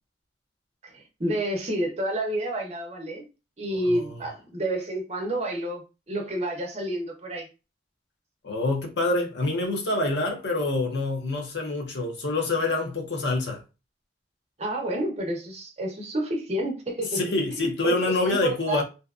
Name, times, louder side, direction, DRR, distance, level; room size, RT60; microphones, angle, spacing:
voice 1, 0.8-3.2 3.6-7.5 14.6-17.2 17.6-18.8, right 1 dB, 35° right, 0.7 m, -29 dB
voice 2, 8.4-13.6 17.1-18.8, left 2 dB, 70° left, 0.7 m, -26 dB
2.7 x 2.2 x 2.3 m
head